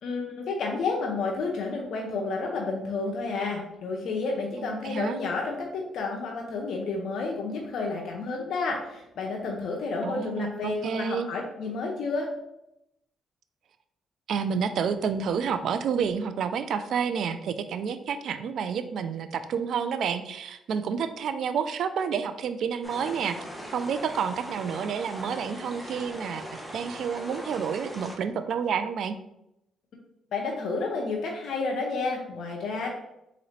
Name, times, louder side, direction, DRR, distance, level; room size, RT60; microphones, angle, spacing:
voice 1, 0.0-12.3 30.3-32.9, left 3 dB, 70° left, 0 dB, 0.7 m, -30 dB
voice 2, 4.6-5.2 10.0-11.3 14.3-23.4 23.7-26.4 26.7-29.1, right 6 dB, 65° right, 11 dB, 0.4 m, -29 dB
sound 1, 22.8-28.2, equal, 5° right, 1.1 m, -40 dB
3.8 x 3.1 x 4.3 m, 0.85 s
cardioid pair, 90°, 0 cm